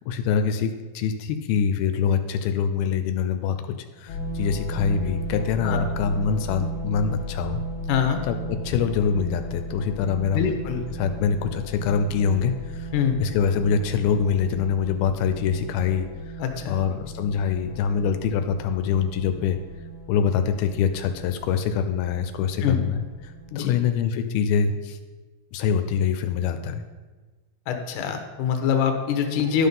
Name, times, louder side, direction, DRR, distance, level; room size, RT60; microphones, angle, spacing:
voice 1, 0.1-3.6 4.0-7.6 8.2-12.9 13.2-16.1 16.7-19.6 20.1-23.0 23.2-25.0 25.5-26.8, left 7 dB, 85° left, 8 dB, 2.5 m, -24 dB
sound 1, 4.1-23.6, right 1 dB, 50° left, 2.3 m, -35 dB
voice 2, 7.9-8.2 10.3-10.9 12.9-13.2 16.4-16.8 22.6-22.8 23.5-23.7 27.7-29.7, left 7 dB, 70° left, 5 dB, 2.4 m, -24 dB
12.0 x 5.7 x 5.5 m, 1.3 s
omnidirectional pair, 4.3 m